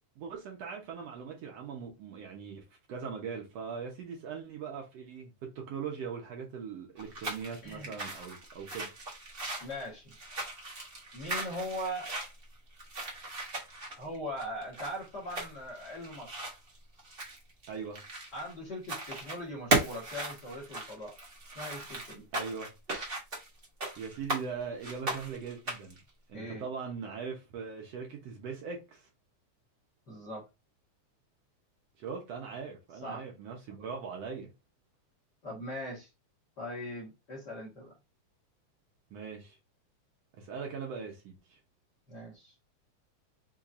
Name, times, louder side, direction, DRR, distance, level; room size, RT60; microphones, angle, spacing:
voice 1, 0.2-2.6 2.9-8.9 17.7-18.0 22.3-22.7 24.0-26.0 26.3-29.1 32.0-34.5 39.1-39.6 40.4-41.6, right 6 dB, 65° right, 1.8 m, -40 dB
sound 1, 7.0-18.5 18.8-19.4 19.7-24.4 24.8-26.0, right 2 dB, 40° right, 0.8 m, -37 dB
voice 2, 7.6-8.0 9.6-10.1 11.1-12.1 14.0-16.3 18.3-21.2 21.5-22.3 26.3-26.6 30.1-30.5 33.0-33.3 35.4-36.1 36.6-37.9 42.1-42.5, equal, 40° left, 1.7 m, -40 dB
5.7 x 3.5 x 2.5 m
omnidirectional pair, 3.5 m